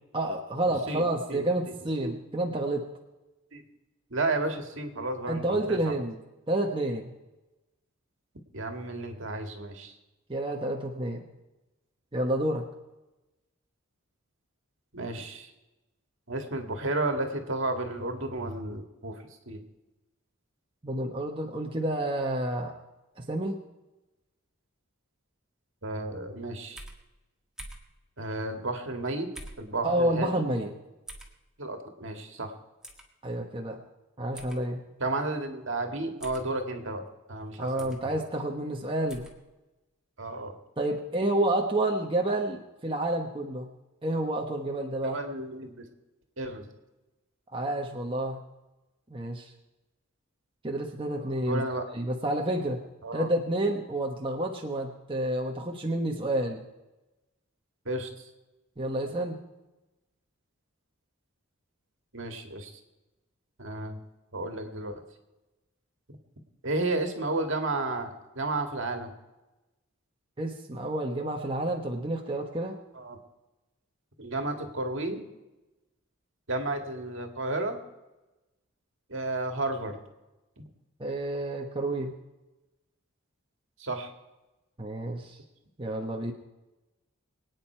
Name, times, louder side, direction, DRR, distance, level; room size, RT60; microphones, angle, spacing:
voice 1, 0.1-2.8 5.3-6.2 6.5-7.1 10.3-11.2 12.1-12.7 20.8-22.7 23.2-23.6 29.8-30.7 33.2-33.8 34.2-34.8 37.6-39.3 40.8-43.7 44.0-45.2 47.5-48.4 49.1-49.5 50.6-52.8 53.1-56.6 58.8-59.4 70.4-72.8 81.0-82.2 84.8-85.4 85.8-86.3, right 1 dB, 25° right, 0 dB, 1.2 m, -29 dB
voice 2, 0.9-1.7 2.0-2.2 3.5-3.6 4.1-5.9 8.5-9.9 14.9-15.5 16.3-19.6 25.8-26.8 28.2-29.3 29.6-30.5 31.6-32.5 35.0-37.0 37.3-38.2 40.2-40.5 45.0-45.8 46.4-46.7 51.5-51.8 53.0-53.3 57.9-58.1 62.1-62.7 63.6-64.0 64.3-65.0 66.6-69.1 73.0-73.2 74.2-75.3 76.5-77.8 79.1-80.0 83.8-84.1, right 2 dB, 60° right, 4 dB, 2.0 m, -32 dB
sound 1, 26.8-27.0 27.6-27.9 29.3-29.7 31.1-31.3 32.8-33.0 34.3-34.6 36.2-36.5 37.8-38.0 39.1-39.3, right 1 dB, 5° right, 1.7 m, -44 dB
23.5 x 9.5 x 4.6 m, 1.0 s
head